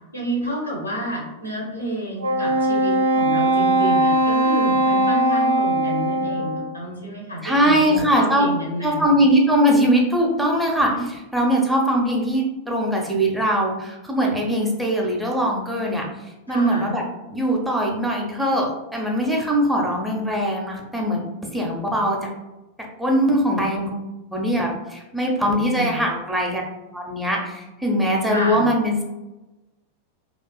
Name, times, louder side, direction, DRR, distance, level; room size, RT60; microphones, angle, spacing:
voice 1, 0.1-9.2 10.9-11.1 16.5-17.0 25.7-26.0 28.2-28.7, right 1 dB, 85° left, -2 dB, 0.7 m, -30 dB
Wind instrument woodwind instrument, 2.2-6.8, right 1 dB, 70° right, 0.3 m, -20 dB
voice 2, 7.4-8.5 8.8-10.9 11.3-17.0 17.3-21.2 21.5-22.3 23.0-24.0 24.3-26.6 26.9-29.0, equal, 5° right, -2 dB, 0.5 m, -21 dB
2.4 x 2.3 x 2.2 m, 1.0 s
figure-of-eight pair, 90°, 0 cm